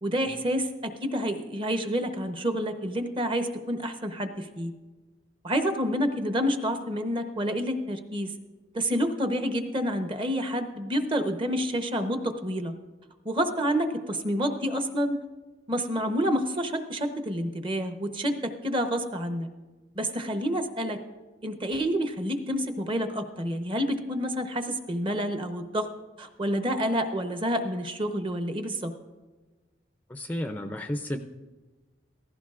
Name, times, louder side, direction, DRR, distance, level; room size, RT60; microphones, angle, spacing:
voice 1, 0.0-4.7 5.4-8.3 8.7-12.7 13.2-15.2 15.7-19.5 19.9-21.0 21.4-25.9 26.2-28.9, equal, 30° right, 7 dB, 0.8 m, -28 dB
voice 2, 30.1-31.2, left 1 dB, 10° left, 6 dB, 0.4 m, -32 dB
16.0 x 15.0 x 2.4 m, 1.2 s
head